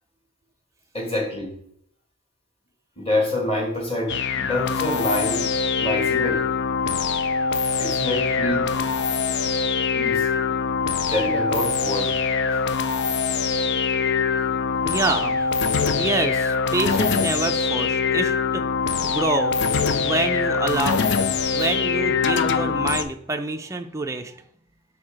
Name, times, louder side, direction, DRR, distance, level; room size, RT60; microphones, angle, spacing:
voice 1, 0.9-1.5 3.0-5.5 5.8-6.4 7.8-8.7 9.9-10.3 11.0-12.2 12.5-12.6 13.1-13.2, left 1 dB, 25° left, 1 dB, 1.8 m, -26 dB
sound 1, 4.1-23.0, left 5 dB, 55° left, 0.5 m, -23 dB
voice 2, 7.4-7.8 9.1-9.2 14.8-15.5 16.0-18.7 19.0-19.6 20.0-21.2 21.5-24.4, right 3 dB, 15° right, 4 dB, 0.4 m, -27 dB
5.7 x 4.5 x 4.9 m, 0.67 s
head